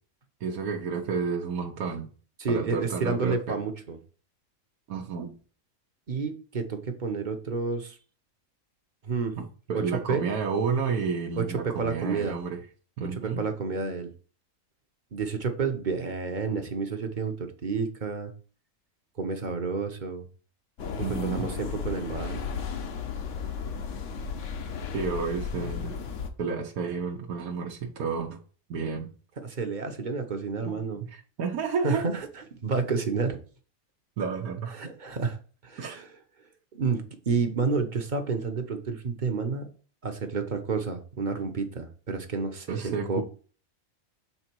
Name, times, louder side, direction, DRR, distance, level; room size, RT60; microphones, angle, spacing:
voice 1, 0.4-2.1 2.5-3.6 4.9-5.4 9.7-12.6 13.0-13.4 21.0-21.5 24.9-26.0 26.4-28.4 28.7-29.1 30.7-30.8 31.1-32.1 34.2-34.8 35.8-36.0 42.7-43.2, right 5 dB, 90° right, 1.3 m, -31 dB
voice 2, 2.4-4.0 6.1-8.0 9.0-9.4 9.7-9.8 10.1-10.2 11.4-11.5 11.8-12.4 13.0-14.1 15.1-18.3 19.2-20.3 21.0-22.4 29.4-31.0 31.8-33.4 34.7-35.4 35.6-36.1 36.7-39.7 40.0-43.2, right 4 dB, 40° right, 0.8 m, -30 dB
sound 1, 20.8-26.3, left 6 dB, 65° left, 1.1 m, -34 dB
7.1 x 3.8 x 4.5 m
omnidirectional pair, 1.5 m